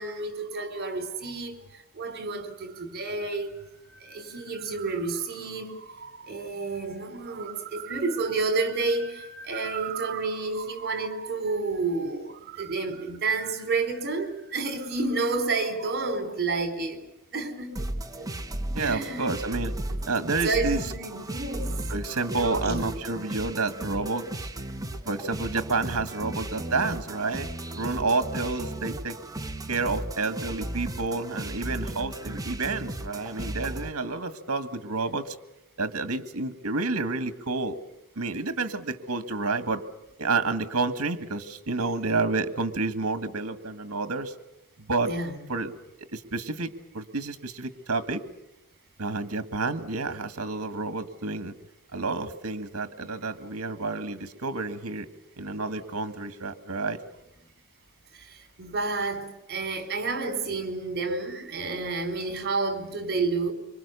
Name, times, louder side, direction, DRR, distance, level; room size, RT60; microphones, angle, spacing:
voice 1, 0.0-17.0 17.3-17.9 18.2-18.3 18.7-19.3 19.9-20.0 20.4-21.8 22.3-23.0 45.0-45.3 58.1-63.5, right 3 dB, 50° right, 4.6 m, -30 dB
sound 1, 17.7-33.9, right 1 dB, 15° right, 1.5 m, -35 dB
voice 2, 18.7-19.7 20.0-20.8 21.9-24.5 25.1-27.5 27.7-29.2 29.7-35.4 35.8-37.8 38.2-39.8 40.2-44.3 44.9-45.1 45.5-45.7 46.1-48.2 49.0-51.5 51.9-55.1 55.4-57.0, right 3 dB, 70° right, 1.8 m, -29 dB
26.0 x 25.0 x 7.0 m
head